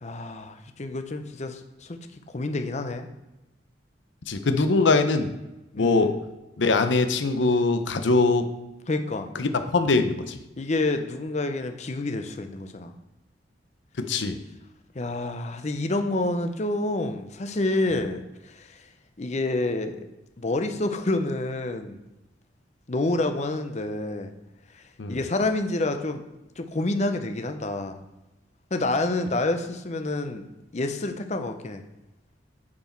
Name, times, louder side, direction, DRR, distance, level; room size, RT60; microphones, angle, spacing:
voice 1, 0.0-3.1 5.7-6.2 8.9-9.3 10.6-12.9 14.9-18.9 19.2-20.0 20.4-22.0 22.9-24.3 24.7-26.2 26.6-28.0 28.7-30.4 30.7-31.8, left 2 dB, 40° left, 7 dB, 0.6 m, -28 dB
voice 2, 4.3-5.3 5.8-6.2 6.6-8.5 9.4-10.4 14.0-14.4 25.0-25.2, left 3 dB, 80° left, 8 dB, 0.7 m, -22 dB
8.4 x 4.7 x 4.5 m, 0.97 s
head